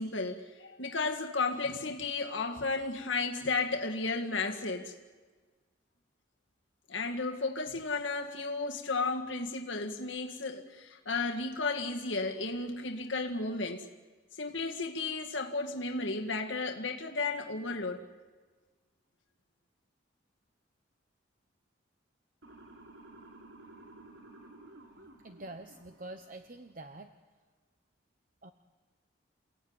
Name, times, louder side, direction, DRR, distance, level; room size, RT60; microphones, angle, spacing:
voice 1, 0.0-4.9 6.9-13.9 14.4-18.0, left 3 dB, 70° left, 3 dB, 1.9 m, -33 dB
Motor vehicle (road) / Siren, 22.4-26.6, right 2 dB, 70° right, 4.1 m, -54 dB
voice 2, 25.2-27.1 28.4-28.5, right 2 dB, 40° right, 7 dB, 1.0 m, -46 dB
29.0 x 17.0 x 9.6 m, 1.4 s
head